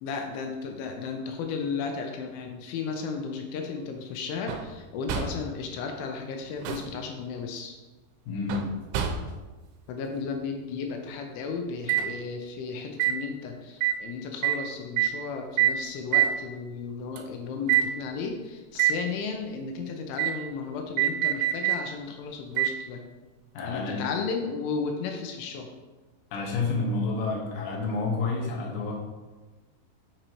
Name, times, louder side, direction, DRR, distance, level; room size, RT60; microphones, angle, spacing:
voice 1, 0.0-7.7 9.9-23.0 23.6-25.7, left 5 dB, 85° left, 3 dB, 3.1 m, -34 dB
sound 1, 4.5-4.8 5.1-5.5 6.4-7.0 8.5-9.5 11.9-12.1 13.0-13.2 13.8-14.0 14.4-14.6 15.0-15.2 15.6-15.8 16.1-16.4 17.2-17.3 17.7-17.9 18.8-19.0 20.2-20.4 21.0-21.8 22.6-22.8 23.6-23.7, right 11 dB, 90° right, 3.0 m, -25 dB
voice 2, 8.3-8.6 23.5-24.0 26.3-28.9, left 3 dB, 65° left, -2 dB, 2.5 m, -29 dB
7.7 x 6.3 x 3.0 m, 1.2 s
omnidirectional pair, 5.4 m